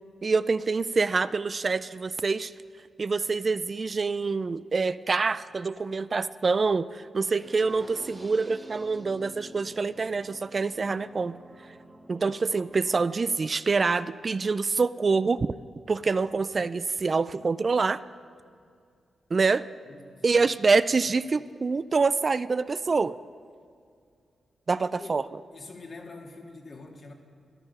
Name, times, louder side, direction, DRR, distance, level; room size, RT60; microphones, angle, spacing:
voice 1, 0.2-2.5 3.0-11.3 12.1-15.5 15.9-18.0 19.3-19.6 20.2-23.2 24.7-25.2, right 4 dB, 45° right, 15 dB, 0.4 m, -26 dB
sound 1, 7.2-13.1, right 1 dB, 25° right, 1.1 m, -48 dB
voice 2, 19.9-20.5 21.0-21.2 24.8-25.1 25.5-27.1, left 3 dB, 55° left, 2 dB, 1.8 m, -45 dB
14.0 x 11.5 x 5.6 m, 2.3 s
cardioid pair, 50°, 0 cm